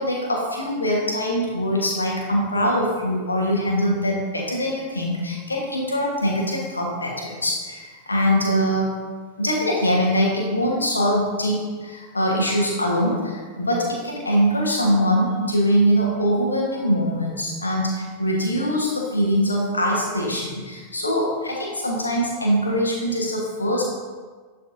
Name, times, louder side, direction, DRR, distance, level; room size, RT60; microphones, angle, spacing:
voice 1, 0.0-9.0 9.4-23.8, equal, 80° left, -2 dB, 1.2 m, -23 dB
11.0 x 4.1 x 2.6 m, 1.5 s
figure-of-eight pair, 90°, 0 cm